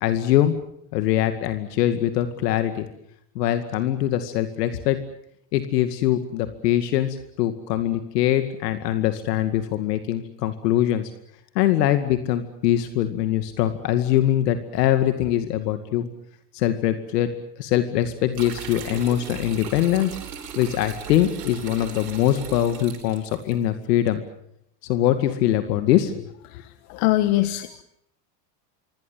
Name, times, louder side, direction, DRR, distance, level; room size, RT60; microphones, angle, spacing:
voice 1, 0.0-0.6 0.9-2.9 3.4-5.0 5.5-11.1 11.6-16.1 16.5-17.3 17.6-20.1 20.6-24.2 24.9-26.3, left 12 dB, 80° left, 9 dB, 2.3 m, -22 dB
sound 1, 18.3-23.6, right 7 dB, 85° right, 7.9 m, -37 dB
voice 2, 26.5-27.8, left 16 dB, 60° left, 12 dB, 1.5 m, -23 dB
26.5 x 24.0 x 7.4 m, 0.74 s
supercardioid pair, 115°, 47 cm